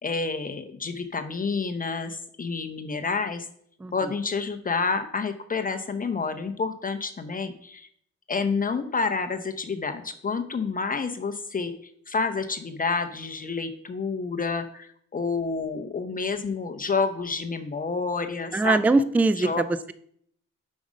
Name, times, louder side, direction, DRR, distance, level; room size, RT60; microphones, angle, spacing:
voice 1, 0.0-3.5 3.9-7.9 8.3-11.7 12.1-19.0 19.4-19.6, left 4 dB, 30° left, 7 dB, 0.7 m, -29 dB
voice 2, 3.8-4.1 18.5-19.9, right 3 dB, 5° right, 15 dB, 0.3 m, -22 dB
7.0 x 5.3 x 5.0 m, 0.65 s
cardioid pair, 90°, 30 cm